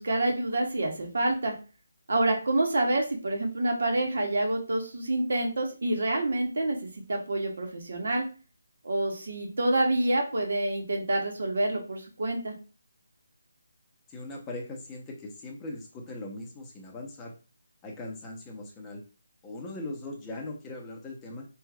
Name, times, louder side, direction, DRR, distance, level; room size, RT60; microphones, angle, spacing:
voice 1, 0.0-1.5 2.1-6.8 7.1-8.3 8.8-12.5, right 1 dB, 70° right, 1 dB, 1.5 m, -27 dB
voice 2, 14.1-17.3 17.8-19.0 19.4-21.5, left 2 dB, 10° left, -1 dB, 0.8 m, -40 dB
5.5 x 3.0 x 2.3 m, 0.34 s
figure-of-eight pair, 165°, 0 cm